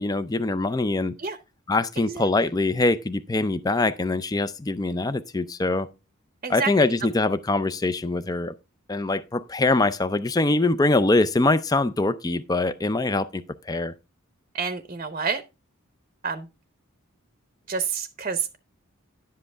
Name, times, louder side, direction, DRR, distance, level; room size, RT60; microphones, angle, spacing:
voice 1, 0.0-1.1 1.7-5.9 6.5-8.5 8.9-13.9, left 2 dB, 15° left, 0.4 m, -23 dB
voice 2, 2.0-2.3 6.4-6.7 14.5-15.4 16.2-16.5 17.7-18.6, right 5 dB, 35° right, 0.7 m, -28 dB
11.0 x 7.6 x 3.4 m
head